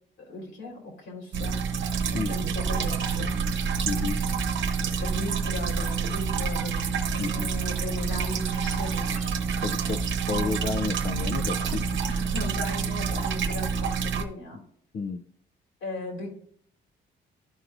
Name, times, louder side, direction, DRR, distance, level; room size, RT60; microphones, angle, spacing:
voice 1, 0.2-1.6 2.3-3.4 4.8-6.9 7.1-9.3 10.4-10.5 12.1-14.6 15.8-16.4, left 2 dB, 75° left, -1 dB, 3.0 m, -38 dB
sound 1, 1.3-14.2, right 5 dB, 70° right, 0.9 m, -28 dB
voice 2, 2.1-2.5 3.8-4.3 7.2-7.5 9.6-12.0 14.9-15.2, left 4 dB, 45° left, 7 dB, 0.5 m, -31 dB
12.5 x 4.6 x 2.5 m, 0.66 s
cardioid pair, 90°, 20 cm